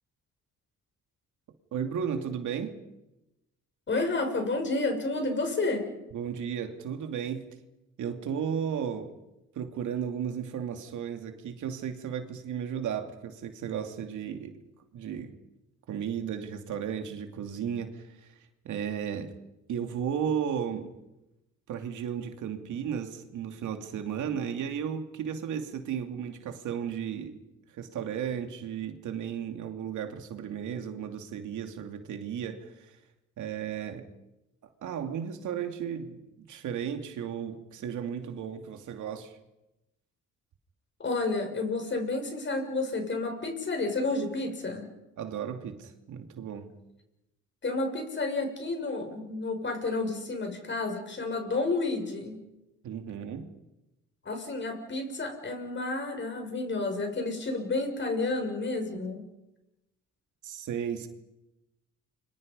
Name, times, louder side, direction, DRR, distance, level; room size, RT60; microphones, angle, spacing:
voice 1, 1.7-2.8 6.1-7.5 8.0-9.1 9.5-14.5 14.9-15.3 15.9-18.3 18.6-19.3 19.7-20.9 21.7-27.4 27.7-32.9 33.4-34.1 34.8-39.4 45.2-46.7 52.8-53.5 60.4-61.1, right 8 dB, 75° right, 6 dB, 2.8 m, -34 dB
voice 2, 3.9-5.8 41.0-44.9 47.6-52.4 54.2-59.2, left 3 dB, 40° left, 5 dB, 6.7 m, -30 dB
30.0 x 25.0 x 5.5 m, 0.95 s
cardioid pair, 90°, 30 cm